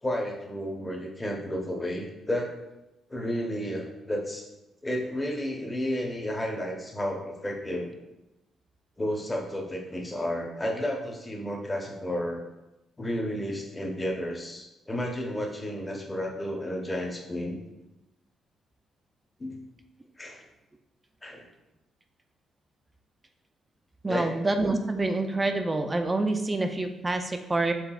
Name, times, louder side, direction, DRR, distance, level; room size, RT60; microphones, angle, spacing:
voice 1, 0.0-2.5 3.1-4.5 4.8-7.9 9.0-12.4 13.0-17.6 19.4-19.6 20.2-20.4 21.2-21.5 24.1-24.3, equal, 20° left, 0 dB, 0.8 m, -32 dB
voice 2, 24.0-27.7, right 2 dB, 20° right, 6 dB, 0.4 m, -27 dB
5.8 x 3.5 x 2.4 m, 0.96 s
cardioid pair, 90°, 0 cm